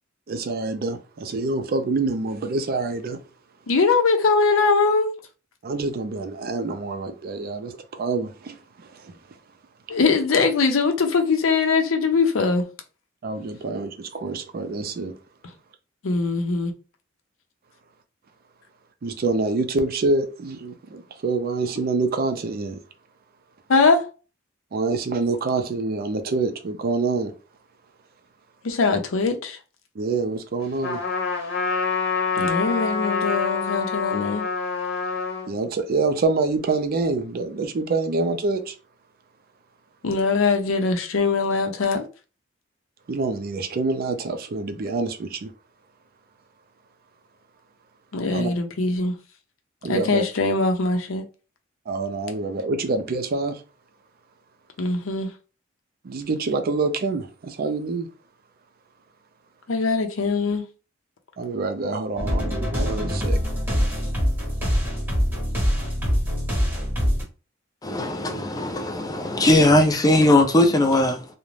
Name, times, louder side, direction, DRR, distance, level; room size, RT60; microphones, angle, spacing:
voice 1, 0.3-3.2 5.6-9.2 9.9-10.0 13.2-15.1 19.0-22.8 24.7-27.3 30.0-31.0 35.5-38.7 43.1-45.5 48.3-48.5 49.8-50.2 51.9-53.6 56.0-58.1 61.4-63.4, right 3 dB, 50° right, 0.4 m, -26 dB
voice 2, 3.7-5.1 9.9-12.7 16.0-16.7 23.7-24.0 28.6-29.6 32.4-34.4 40.0-42.1 48.1-49.2 49.9-51.2 54.8-55.3 59.7-60.6, left 4 dB, 80° left, 0.6 m, -21 dB
Trumpet, 30.8-35.5, left 5 dB, 55° left, 0.9 m, -26 dB
sound 1, 62.2-67.2, equal, 10° right, 0.8 m, -24 dB
voice 3, 67.8-71.2, left 1 dB, 20° left, 0.5 m, -19 dB
2.5 x 2.1 x 3.1 m
head